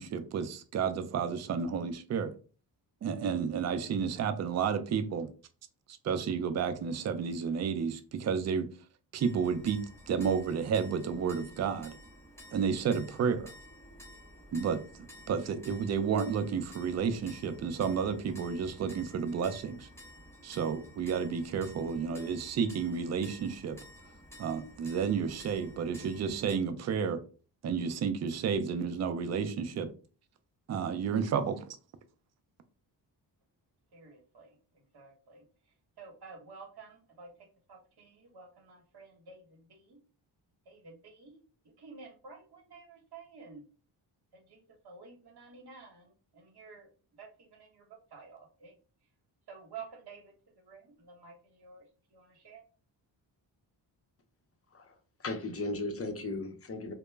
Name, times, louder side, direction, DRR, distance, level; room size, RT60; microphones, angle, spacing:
voice 1, 0.0-2.3 3.0-5.3 6.0-8.7 9.1-12.0 12.5-13.5 14.5-19.9 20.4-23.8 24.4-27.2 27.6-29.9 30.7-31.7, right 6 dB, 35° right, 0.4 m, -31 dB
sound 1, 9.2-26.6, equal, 5° left, 0.8 m, -52 dB
voice 2, 33.9-40.0 40.6-41.4 41.8-43.6 44.3-48.8 49.5-52.6, right 5 dB, 55° right, 1.1 m, -52 dB
voice 3, 55.2-56.9, left 2 dB, 30° left, 0.5 m, -36 dB
2.1 x 2.0 x 3.2 m
cardioid pair, 55°, 47 cm